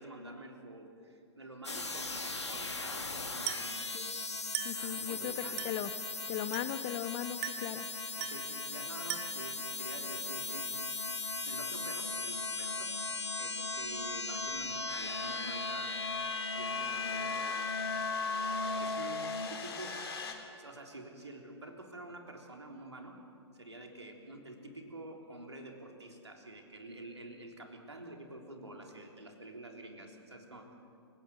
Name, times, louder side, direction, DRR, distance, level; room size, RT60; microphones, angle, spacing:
voice 1, 0.0-3.9 4.8-5.6 8.2-11.0 11.5-13.0 13.4-16.0 16.6-17.4 18.6-20.1 20.6-23.2 23.5-30.7, right 1 dB, 80° right, 2 dB, 3.6 m, -48 dB
sound 1, 1.6-19.5, left 3 dB, 85° left, 1.9 m, -37 dB
Glass, 3.5-3.8 4.5-4.9 5.6-5.9 6.5-6.9 7.4-7.8 8.2-8.5 9.1-9.5, right 12 dB, 35° right, 2.3 m, -40 dB
voice 2, 4.6-5.3 5.6-5.9 6.3-7.9, left 12 dB, 35° left, 13 dB, 1.0 m, -38 dB
sound 2, 14.9-20.3, left 4 dB, 65° left, 3.4 m, -44 dB
28.5 x 17.0 x 8.0 m, 2.5 s
figure-of-eight pair, 110°, 14 cm